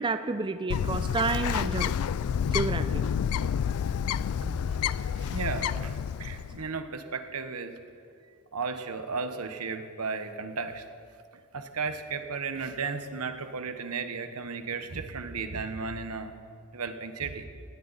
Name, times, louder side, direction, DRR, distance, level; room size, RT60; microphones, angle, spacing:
voice 1, 0.0-1.9 2.5-3.0, right 3 dB, 20° right, 10 dB, 0.4 m, -30 dB
Bird, 0.7-6.6, left 8 dB, 70° left, 0.3 m, -29 dB
voice 2, 4.4-7.8 8.5-10.8 11.5-16.3 16.7-17.5, right 4 dB, 80° right, 8 dB, 1.1 m, -35 dB
18.5 x 16.5 x 4.1 m, 2.4 s
head